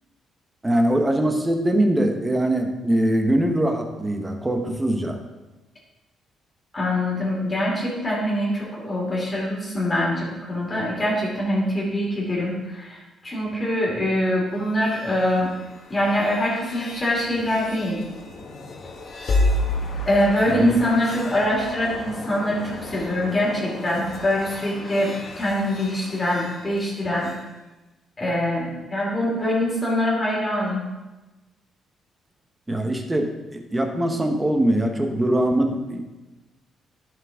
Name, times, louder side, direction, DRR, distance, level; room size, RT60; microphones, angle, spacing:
voice 1, 0.6-5.2 20.5-20.8 32.7-36.0, right 1 dB, 15° right, 5 dB, 1.2 m, -22 dB
voice 2, 6.7-15.5 15.9-18.0 20.1-27.3 28.2-30.8, left 1 dB, 25° left, -5 dB, 2.9 m, -24 dB
sound 1, 14.6-27.4, left 2 dB, 55° left, 1.4 m, -32 dB
11.0 x 6.3 x 3.7 m, 1.1 s
cardioid pair, 90°, 0 cm